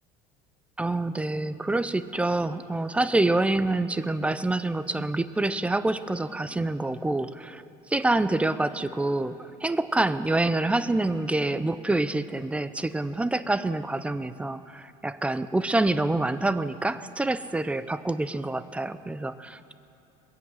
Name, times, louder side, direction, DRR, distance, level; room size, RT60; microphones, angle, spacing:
voice 1, 0.8-7.6 7.9-19.7, right 2 dB, 5° right, 14 dB, 0.5 m, -26 dB
21.5 x 8.6 x 7.7 m, 2.9 s
cardioid pair, 125°, 18 cm